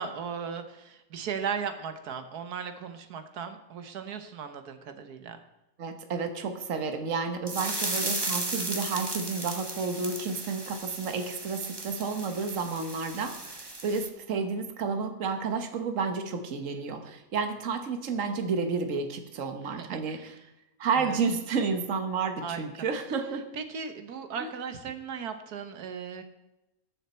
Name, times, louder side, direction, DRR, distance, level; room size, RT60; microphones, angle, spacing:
voice 1, 0.0-5.4 19.6-20.5 20.9-21.2 22.4-22.7 23.5-26.2, right 6 dB, 85° right, 8 dB, 1.6 m, -37 dB
voice 2, 5.8-20.3 20.8-23.5 24.4-24.5, right 5 dB, 60° right, 7 dB, 1.5 m, -31 dB
sound 1, 7.5-14.1, right 2 dB, 20° right, 1.0 m, -35 dB
20.0 x 6.9 x 4.3 m, 0.94 s
omnidirectional pair, 1.6 m